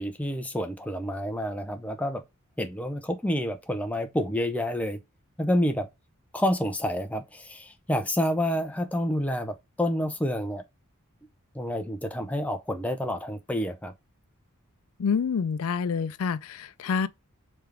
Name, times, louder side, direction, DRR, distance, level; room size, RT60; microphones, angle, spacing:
voice 1, 0.0-2.2 2.6-5.0 5.4-5.9 6.3-10.6 11.5-13.9, equal, 5° left, 0.5 m, -28 dB
voice 2, 15.0-17.1, left 6 dB, 85° left, 0.4 m, -27 dB
3.5 x 3.4 x 3.3 m
head